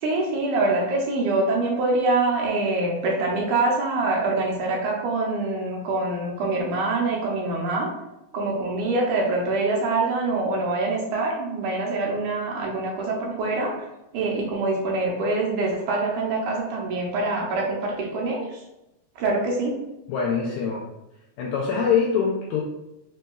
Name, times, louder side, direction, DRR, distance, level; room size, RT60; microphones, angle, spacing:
voice 1, 0.0-7.9 8.3-13.7 14.1-18.6 19.2-19.8, right 2 dB, 75° right, -1 dB, 2.0 m, -25 dB
voice 2, 20.1-20.8 21.4-22.6, left 6 dB, 85° left, -2 dB, 1.6 m, -23 dB
5.2 x 3.1 x 2.2 m, 0.91 s
omnidirectional pair, 3.8 m